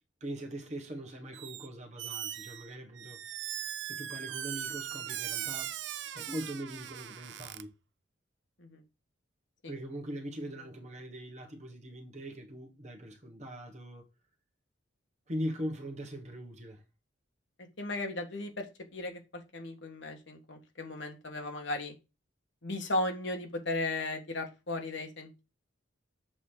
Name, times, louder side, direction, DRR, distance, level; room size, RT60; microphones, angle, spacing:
voice 1, 0.2-3.2 3.8-5.7 6.0-7.7 9.6-14.0 15.3-16.8, equal, 35° right, 1.4 m, -41 dB
Squeak, 1.3-1.7 2.0-7.6, right 11 dB, 65° right, 0.5 m, -39 dB
voice 2, 17.8-18.7 18.9-21.9 22.6-25.4, left 2 dB, 65° left, 1.7 m, -36 dB
7.4 x 3.7 x 6.4 m
head